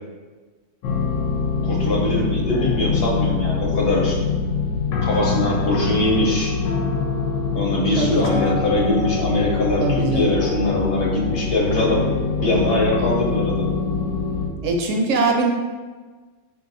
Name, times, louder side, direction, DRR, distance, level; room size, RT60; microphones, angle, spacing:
sound 1, 0.8-14.5, left 5 dB, 90° left, 0.9 m, -24 dB
voice 1, 1.6-4.2 5.0-6.5 7.5-12.1 12.4-13.7, left 1 dB, 55° left, -4 dB, 0.9 m, -22 dB
voice 2, 8.0-8.6 9.8-10.4 14.6-15.5, right 2 dB, 80° right, 2 dB, 0.9 m, -22 dB
4.6 x 2.7 x 2.5 m, 1.4 s
omnidirectional pair, 1.3 m